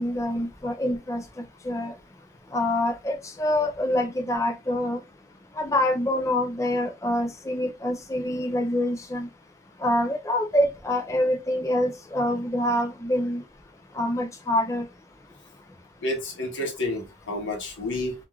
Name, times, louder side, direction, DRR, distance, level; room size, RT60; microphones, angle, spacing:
voice 1, 0.0-1.9 2.5-5.0 5.5-9.3 9.8-13.4 13.9-14.9, left 1 dB, 15° left, 0.4 m, -26 dB
voice 2, 16.0-18.1, left 1 dB, 85° left, 1.0 m, -30 dB
3.0 x 2.5 x 2.3 m
head